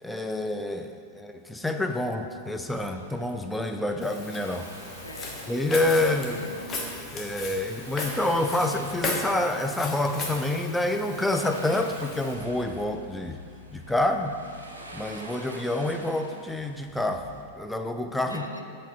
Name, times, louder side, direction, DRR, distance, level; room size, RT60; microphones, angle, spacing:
voice 1, 0.0-4.7 5.5-6.4 7.1-13.4 13.7-14.3 14.9-18.4, left 1 dB, 5° left, 5 dB, 0.3 m, -28 dB
sound 1, 2.7-17.4, right 1 dB, 80° right, 0.6 m, -46 dB
Walk footsteps, 4.0-12.3, left 3 dB, 25° left, 0.8 m, -36 dB
voice 2, 5.0-5.5 6.0-6.8 18.3-18.6, left 1 dB, 85° left, 4 dB, 0.4 m, -41 dB
8.0 x 4.2 x 2.9 m, 2.2 s
figure-of-eight pair, 90°, 0 cm